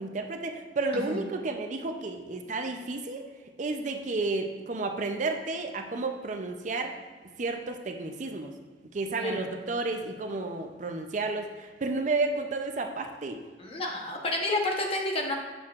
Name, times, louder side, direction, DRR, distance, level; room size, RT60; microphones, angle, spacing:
voice 1, 0.0-3.3 3.6-6.9 7.4-8.5 8.9-13.4, right 3 dB, 45° right, 5 dB, 0.5 m, -31 dB
voice 2, 0.9-1.2 9.2-9.5 13.6-15.3, left 2 dB, 35° left, 1 dB, 0.9 m, -30 dB
7.6 x 6.5 x 2.4 m, 1.4 s
head